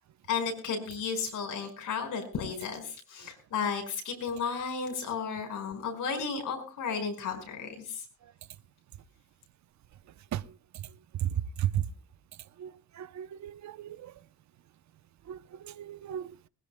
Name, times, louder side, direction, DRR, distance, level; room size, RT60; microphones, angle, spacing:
voice 1, 0.3-8.0, left 6 dB, 90° left, 5.2 m, -33 dB
voice 2, 13.0-14.0 15.3-15.4 15.8-16.3, right 11 dB, 65° right, 0.7 m, -33 dB
21.0 x 20.0 x 2.2 m
cardioid pair, 120°, 30 cm